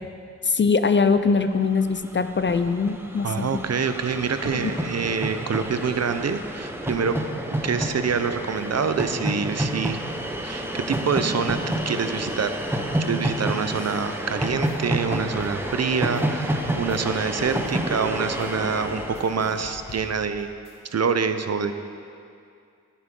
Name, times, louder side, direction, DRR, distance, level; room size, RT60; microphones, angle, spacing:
voice 1, 0.4-3.6 4.5-4.7, left 4 dB, 35° left, 10 dB, 0.5 m, -22 dB
Train, 1.5-1.6 1.7-20.2, right 1 dB, 5° right, 0.9 m, -29 dB
voice 2, 3.2-7.2 7.6-10.0 10.4-11.6 11.8-20.5 20.9-21.7, right 5 dB, 50° right, 9 dB, 0.7 m, -26 dB
sound 1, 14.1-20.9, left 2 dB, 70° left, 1.5 m, -46 dB
10.0 x 9.8 x 3.7 m, 2.4 s
cardioid pair, 50°, 34 cm